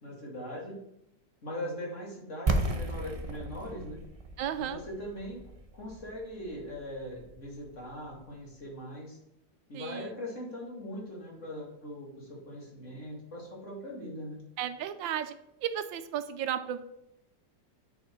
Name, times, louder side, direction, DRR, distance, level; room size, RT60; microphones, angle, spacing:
voice 1, 0.0-0.8 1.4-4.0 4.6-5.4 5.7-9.2 9.7-14.4, equal, 40° left, -2 dB, 2.5 m, -40 dB
sound 1, 2.5-8.2, right 2 dB, 55° right, 0.4 m, -35 dB
voice 2, 4.4-4.8 9.7-10.1 14.6-15.3 15.6-16.8, right 10 dB, 90° right, 11 dB, 1.4 m, -34 dB
9.7 x 5.2 x 4.5 m, 0.81 s
omnidirectional pair, 2.0 m